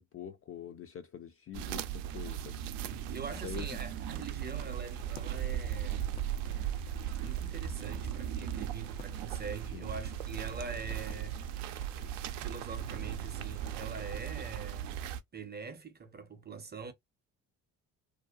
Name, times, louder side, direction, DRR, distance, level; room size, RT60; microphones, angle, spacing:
voice 1, 0.0-2.6 3.4-3.7 9.7-9.9, left 9 dB, 30° left, 0.4 m, -45 dB
sound 1, 1.5-15.2, right 10 dB, 65° right, 0.5 m, -37 dB
voice 2, 2.8-6.2 7.2-11.7 12.0-15.0 15.3-16.9, right 4 dB, 20° right, 0.6 m, -44 dB
sound 2, 4.5-14.2, left 6 dB, 85° left, 0.7 m, -54 dB
2.6 x 2.2 x 2.3 m
hypercardioid pair, 50°, 47 cm